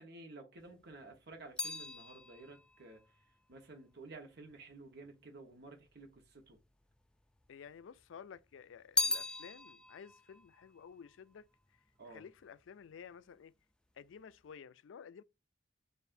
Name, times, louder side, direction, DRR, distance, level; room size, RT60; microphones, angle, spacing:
voice 1, 0.0-3.2 3.5-6.6 12.0-12.2, right 2 dB, 60° right, 1.1 m, -53 dB
sound 1, 0.6-5.0 5.8-6.6 6.9-8.0 8.4-11.9 12.2-12.7, left 2 dB, 5° left, 0.4 m, -40 dB
voice 2, 7.5-11.5 12.1-13.5 14.0-15.2, left 7 dB, 80° left, 0.4 m, -53 dB
6.6 x 2.5 x 2.6 m
head